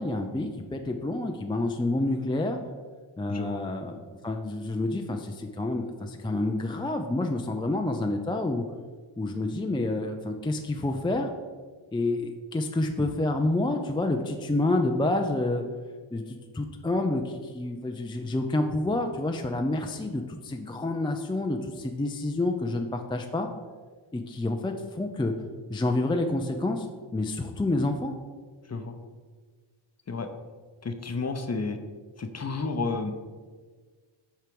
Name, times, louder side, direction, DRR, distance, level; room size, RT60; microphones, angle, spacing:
voice 1, 0.0-2.6 3.2-4.0 4.2-8.6 9.2-11.3 11.9-15.6 16.1-23.5 24.1-25.3 25.7-26.9 27.1-28.1, left 2 dB, 10° left, 4 dB, 0.5 m, -28 dB
voice 2, 3.3-3.6 28.7-28.9 30.1-30.3 30.8-31.8 32.2-33.1, left 4 dB, 30° left, 7 dB, 0.8 m, -31 dB
7.8 x 4.5 x 5.2 m, 1.5 s
wide cardioid pair, 90°, 49 cm